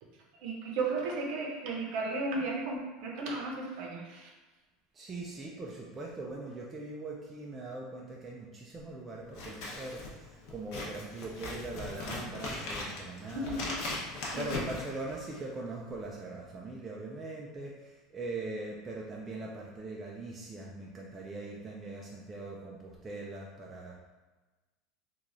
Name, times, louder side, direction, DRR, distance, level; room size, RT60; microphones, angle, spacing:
voice 1, 0.4-4.3 13.3-13.7 14.3-14.4, right 3 dB, 50° right, 0 dB, 0.7 m, -34 dB
voice 2, 4.9-13.6 14.4-24.0, right 2 dB, 15° right, -3 dB, 0.3 m, -41 dB
Scissors, 9.3-15.5, left 2 dB, 55° left, 0.7 m, -39 dB
3.1 x 2.3 x 3.7 m, 1.2 s
cardioid pair, 170°, 0 cm